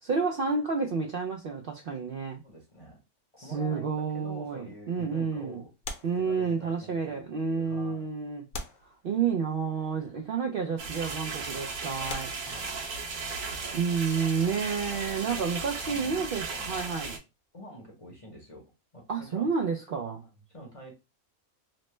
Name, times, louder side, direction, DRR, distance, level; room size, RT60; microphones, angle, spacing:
voice 1, 0.0-2.4 3.4-5.6 6.0-8.4 9.0-12.3 13.7-17.2 19.1-20.2, right 5 dB, 90° right, 0.4 m, -30 dB
voice 2, 2.4-3.0 3.3-5.7 6.1-8.1 9.7-10.2 12.4-12.8 13.4-14.0 14.2-14.7 15.2-15.5 15.9-16.3 16.6-16.7 17.5-18.6 18.9-19.5 20.1-20.9, equal, 35° left, 0.6 m, -48 dB
sound 1, 5.8-6.9 7.7-7.8 8.5-9.6 10.6-10.8 11.4-11.5 12.1-13.3 15.2-17.0 17.2-17.4, left 3 dB, 65° left, 1.0 m, -43 dB
sound 2, 10.8-17.2, right 4 dB, 70° right, 1.2 m, -36 dB
3.1 x 2.1 x 3.0 m
omnidirectional pair, 1.5 m